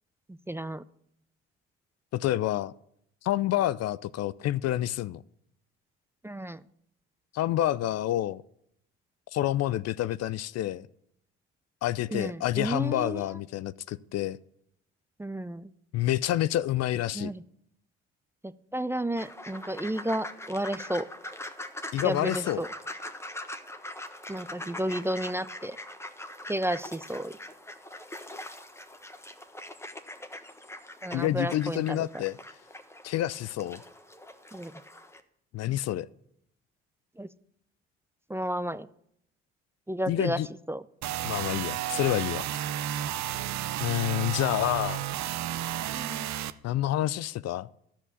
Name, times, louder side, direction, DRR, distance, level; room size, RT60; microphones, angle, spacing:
voice 1, 0.5-0.8 6.2-6.6 12.1-13.2 15.2-15.7 17.1-17.4 18.4-21.1 22.0-22.7 24.3-25.8 26.5-27.3 31.0-32.0 34.5-34.7 37.2-37.3 38.3-38.9 39.9-40.4 40.7-40.8 45.9-46.3, right 1 dB, 10° right, 0.5 m, -32 dB
voice 2, 2.1-2.7 3.2-5.2 7.3-8.4 9.3-10.9 11.8-14.4 15.9-17.3 21.9-22.6 31.1-32.4 33.0-33.8 35.5-36.1 40.1-40.5 41.2-42.5 43.8-45.0 46.6-47.7, left 13 dB, 50° left, 0.5 m, -28 dB
sound 1, 19.2-35.2, left 1 dB, 10° left, 1.3 m, -42 dB
sound 2, 41.0-46.5, right 13 dB, 55° right, 0.7 m, -32 dB
13.5 x 5.8 x 7.1 m
hypercardioid pair, 55°, 32 cm